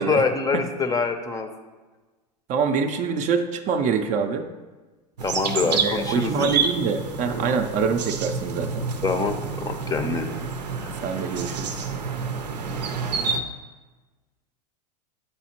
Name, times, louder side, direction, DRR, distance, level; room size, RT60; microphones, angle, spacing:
voice 1, 0.0-1.5 5.2-6.5 9.0-10.4 10.8-11.0, left 4 dB, 15° left, 7 dB, 0.5 m, -25 dB
voice 2, 2.5-4.4 5.7-8.8 11.0-11.8, right 5 dB, 35° right, 6 dB, 0.5 m, -25 dB
sound 1, 5.2-13.4, right 5 dB, 85° right, 0.6 m, -29 dB
8.5 x 4.1 x 2.9 m, 1.2 s
hypercardioid pair, 95°, 21 cm